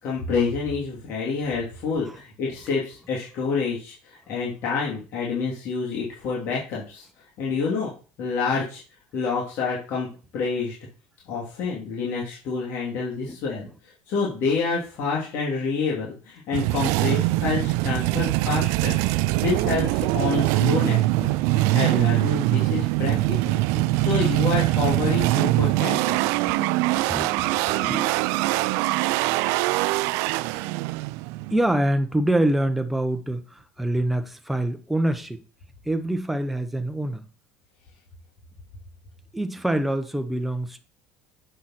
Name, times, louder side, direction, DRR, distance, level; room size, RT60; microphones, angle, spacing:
voice 1, 0.0-7.0 7.4-7.9 8.2-8.8 9.1-10.1 10.3-10.8 11.3-13.7 14.1-23.6 24.0-26.2, left 5 dB, 55° left, 2.9 m, -28 dB
sound 1, 16.5-31.7, right 19 dB, 70° right, 0.4 m, -23 dB
voice 2, 27.0-28.1 31.5-35.4 35.8-37.3 39.3-40.8, right 1 dB, 5° right, 1.0 m, -26 dB
7.8 x 5.6 x 4.3 m
supercardioid pair, 115°, 5 cm